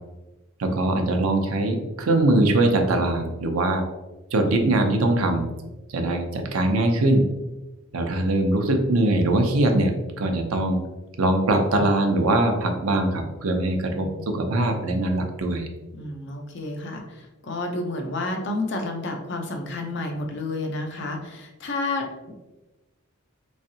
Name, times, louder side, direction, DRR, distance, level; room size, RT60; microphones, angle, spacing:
voice 1, 0.6-3.8 4.3-5.5 5.9-7.3 7.9-10.8 11.2-15.7, right 2 dB, 85° right, 4 dB, 0.6 m, -22 dB
voice 2, 13.7-14.3 15.9-22.3, left 2 dB, 55° left, 3 dB, 0.6 m, -31 dB
3.6 x 3.2 x 2.7 m, 1.1 s
head